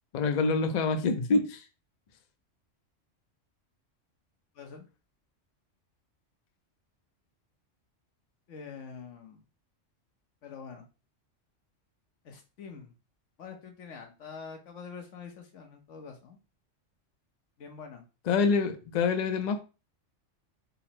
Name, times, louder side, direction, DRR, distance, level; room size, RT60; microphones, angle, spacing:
voice 1, 0.1-1.6 18.3-19.6, left 4 dB, 55° left, 0.5 m, -26 dB
voice 2, 4.5-4.9 8.5-9.4 10.4-10.8 12.2-12.9 13.4-16.4 17.6-18.0, left 6 dB, 75° left, 1.1 m, -45 dB
3.9 x 2.0 x 4.2 m
omnidirectional pair, 1.3 m